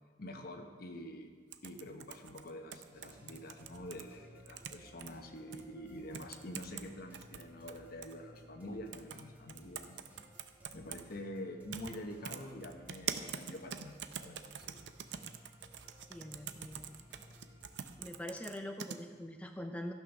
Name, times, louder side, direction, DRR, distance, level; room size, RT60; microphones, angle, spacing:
voice 1, 0.2-1.3 1.6-10.0 10.7-14.8, left 1 dB, 55° left, 4 dB, 1.1 m, -46 dB
sound 1, 1.5-4.0 4.5-5.1 5.5-5.6 6.1-6.9 7.1-8.1 8.9-9.2 9.5-11.0 11.7-12.0 12.2-19.0, right 8 dB, 75° right, 0.6 m, -44 dB
sound 2, 2.9-17.8, equal, 10° right, 2.2 m, -59 dB
voice 2, 16.1-17.1 18.0-19.9, left 1 dB, 5° left, 4 dB, 0.5 m, -44 dB
14.0 x 6.1 x 5.9 m, 1.5 s
head